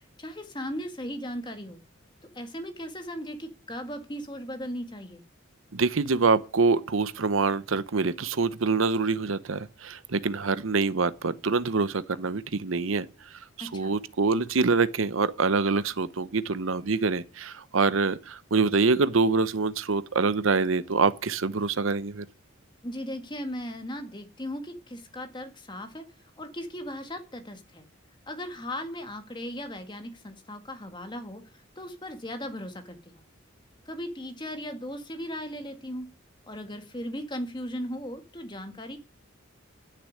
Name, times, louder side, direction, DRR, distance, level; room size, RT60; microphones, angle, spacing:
voice 1, 0.2-1.8 2.2-5.2 13.6-14.0 22.8-26.1 26.4-27.8 28.3-33.0 33.9-36.1 36.5-39.0, equal, 20° left, 1.7 m, -37 dB
voice 2, 5.7-13.1 13.3-22.3, right 4 dB, 75° right, 0.8 m, -25 dB
12.0 x 6.9 x 9.8 m
head